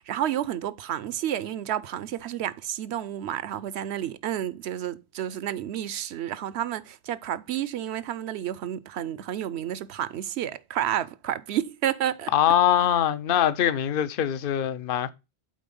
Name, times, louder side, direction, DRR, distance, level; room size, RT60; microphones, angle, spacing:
voice 1, 0.0-12.3, right 11 dB, 75° right, 0.9 m, -30 dB
voice 2, 12.3-15.1, left 10 dB, 60° left, 0.8 m, -23 dB
7.6 x 4.4 x 5.3 m
omnidirectional pair, 1.1 m